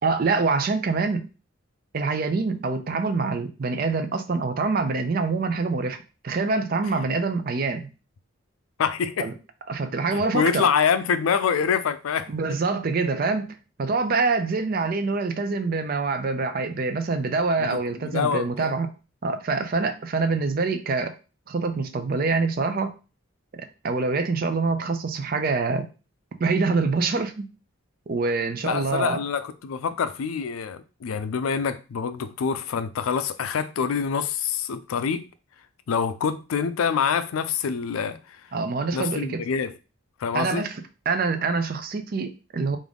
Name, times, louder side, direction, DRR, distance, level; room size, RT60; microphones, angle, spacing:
voice 1, 0.0-1.3 1.9-6.0 6.2-7.9 9.2-9.3 9.7-10.7 12.3-18.9 19.2-21.1 21.5-22.9 23.5-25.9 26.4-27.5 28.1-29.2 38.5-39.4 40.3-42.8, right 4 dB, 45° right, 0.4 m, -25 dB
voice 2, 8.8-9.3 10.1-12.3 17.6-18.7 28.6-35.3 35.9-38.4 38.9-39.7 40.2-40.7, left 6 dB, 90° left, 0.4 m, -26 dB
3.6 x 2.6 x 3.5 m
head